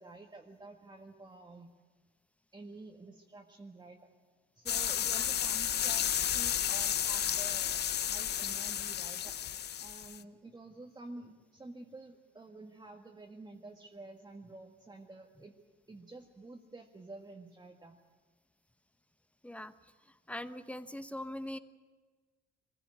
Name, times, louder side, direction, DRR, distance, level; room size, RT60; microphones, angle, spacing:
voice 1, 0.0-1.7 2.5-4.0 4.5-9.4 9.8-15.5 15.9-18.0, right 2 dB, 20° right, -1 dB, 1.8 m, -50 dB
sound 1, 4.7-10.2, left 10 dB, 55° left, 0.7 m, -32 dB
voice 2, 20.3-21.6, left 1 dB, 5° left, 11 dB, 1.1 m, -41 dB
22.5 x 15.5 x 9.5 m, 1.4 s
cardioid pair, 90°, 20 cm